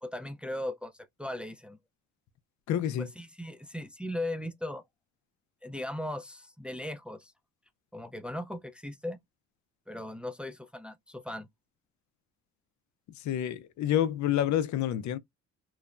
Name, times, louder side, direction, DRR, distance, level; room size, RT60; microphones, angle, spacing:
voice 1, 0.0-1.8 3.0-4.8 5.6-7.3 7.9-9.2 9.9-11.5, left 1 dB, 5° right, 0.4 m, -38 dB
voice 2, 2.7-3.1 13.2-15.2, left 11 dB, 70° left, 0.5 m, -28 dB
3.1 x 2.1 x 2.4 m
cardioid pair, 90°, 30 cm